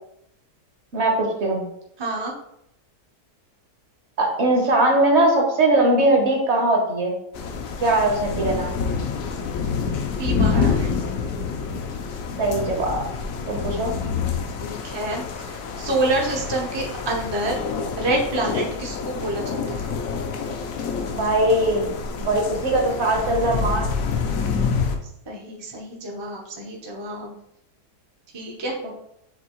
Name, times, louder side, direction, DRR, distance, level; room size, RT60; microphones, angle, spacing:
voice 1, 0.9-1.6 4.2-7.2 7.8-8.7 12.4-13.0 13.5-14.0 21.1-21.9 22.1-23.9 28.8-28.9, right 2 dB, 50° right, 1 dB, 1.0 m, -20 dB
voice 2, 2.0-2.3 10.2-10.9 14.6-17.6 18.0-19.9 25.3-27.4 28.3-28.9, right 2 dB, 30° right, -1 dB, 0.4 m, -28 dB
sound 1, 7.3-25.0, left 5 dB, 65° left, 0.9 m, -27 dB
6.2 x 2.8 x 2.9 m, 0.77 s
omnidirectional pair, 1.7 m